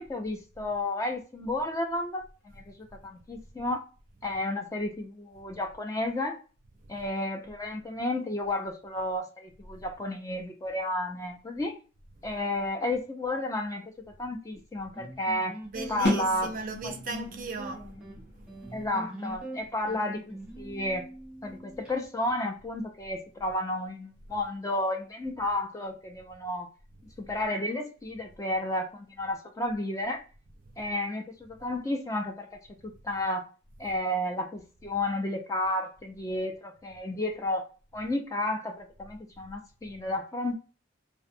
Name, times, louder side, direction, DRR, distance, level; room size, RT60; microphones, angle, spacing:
voice 1, 0.0-2.2 2.6-3.8 4.2-6.4 6.9-11.8 12.2-13.8 14.2-15.5 15.9-16.5 16.8-16.9 17.8-17.9 18.7-21.1 21.4-26.7 27.2-30.2 30.8-32.5 32.8-33.4 33.8-37.7 37.9-40.5, left 1 dB, 15° left, 0.3 m, -32 dB
sound 1, 15.0-21.9, right 1 dB, 5° right, 0.8 m, -43 dB
voice 2, 15.6-17.9 18.4-18.5, right 3 dB, 40° right, 0.5 m, -37 dB
sound 2, 16.0-21.8, left 1 dB, 55° left, 0.8 m, -36 dB
2.5 x 2.1 x 2.6 m
head